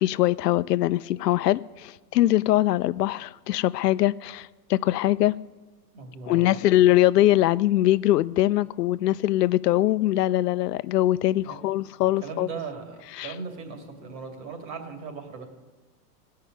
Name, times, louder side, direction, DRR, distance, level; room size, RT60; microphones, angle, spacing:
voice 1, 0.0-5.3 6.3-12.5 13.2-13.3, left 14 dB, 80° left, 16 dB, 0.6 m, -22 dB
voice 2, 5.9-6.6 11.4-11.6 12.2-15.5, right 5 dB, 45° right, 5 dB, 2.8 m, -38 dB
16.0 x 5.6 x 9.3 m, 1.3 s
hypercardioid pair, 130°, 47 cm